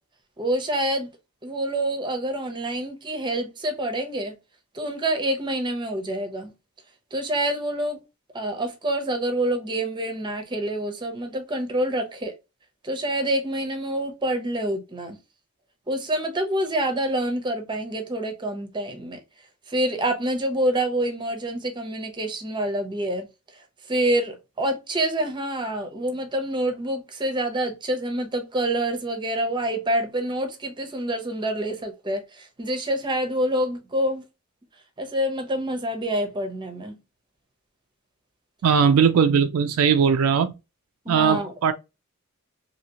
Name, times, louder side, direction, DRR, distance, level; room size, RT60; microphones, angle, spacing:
voice 1, 0.4-1.1 1.4-4.4 4.7-6.5 7.1-8.0 8.3-12.3 12.8-15.2 15.9-19.2 19.7-23.3 23.9-34.2 35.0-37.0 41.1-41.5, right 1 dB, 20° right, 0.7 m, -27 dB
voice 2, 38.6-40.6 41.1-41.7, right 6 dB, 75° right, 0.3 m, -19 dB
2.8 x 2.7 x 2.8 m
head